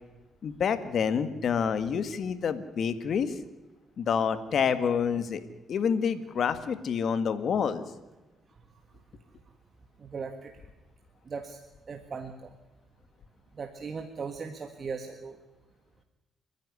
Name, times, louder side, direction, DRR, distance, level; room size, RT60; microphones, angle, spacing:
voice 1, 0.4-3.3 4.0-5.4 5.7-7.8, left 7 dB, 60° left, 12 dB, 1.8 m, -28 dB
voice 2, 10.0-10.5 11.3-11.6 11.9-12.5 13.6-15.4, right 5 dB, 40° right, 6 dB, 1.6 m, -38 dB
28.5 x 10.5 x 9.9 m, 1.1 s
cardioid pair, 90°, 0 cm